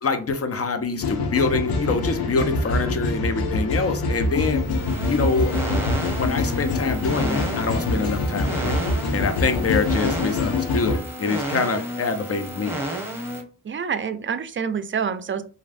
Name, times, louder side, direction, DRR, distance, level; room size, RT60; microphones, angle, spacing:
voice 1, 0.0-4.6 5.1-5.5 6.2-8.9 9.1-12.8, left 4 dB, 40° left, 7 dB, 0.7 m, -25 dB
sound 1, 1.0-11.0, left 2 dB, 85° left, 0.6 m, -25 dB
sound 2, 4.5-13.4, right 1 dB, 5° right, 1.1 m, -31 dB
voice 2, 13.6-15.4, right 6 dB, 35° right, 12 dB, 0.4 m, -27 dB
3.0 x 2.6 x 2.5 m, 0.39 s
supercardioid pair, 45°, 36 cm